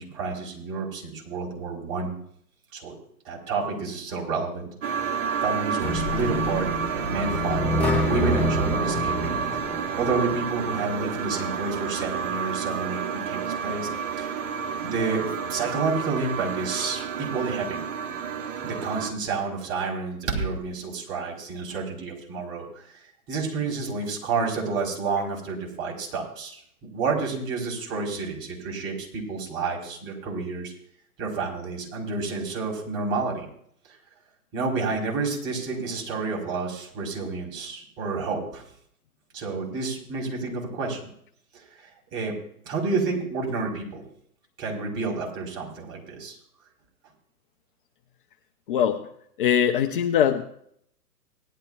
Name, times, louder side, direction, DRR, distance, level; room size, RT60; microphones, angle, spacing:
voice 1, 0.0-2.1 2.7-2.9 3.2-4.7 5.4-6.7 7.1-13.9 14.2-14.4 14.8-15.2 15.5-17.8 18.6-30.7 31.2-33.5 33.8-34.0 34.5-38.6 39.3-41.0 41.5-42.3 42.6-44.0 44.6-46.4, right 4 dB, 25° right, -1 dB, 4.7 m, -30 dB
sound 1, 4.8-19.1, right 7 dB, 55° right, 2.4 m, -30 dB
sound 2, 5.8-10.7, left 1 dB, 5° left, 1.1 m, -27 dB
voice 2, 48.7-49.0 49.4-50.4, left 9 dB, 35° left, 6 dB, 0.8 m, -21 dB
19.0 x 12.0 x 2.5 m, 0.67 s
hypercardioid pair, 130°, 46 cm